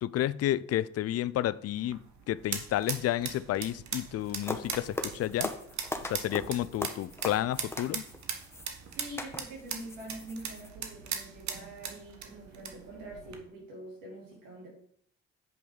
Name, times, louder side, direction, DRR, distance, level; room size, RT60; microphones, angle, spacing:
voice 1, 0.0-5.5 6.0-8.0, left 13 dB, 50° left, 0.5 m, -31 dB
sound 1, 1.7-13.4, right 7 dB, 60° right, 1.4 m, -40 dB
sound 2, 4.2-10.7, left 2 dB, 10° left, 1.3 m, -40 dB
voice 2, 8.9-14.7, right 1 dB, 85° right, 4.0 m, -45 dB
7.9 x 5.3 x 5.2 m
supercardioid pair, 60°, 31 cm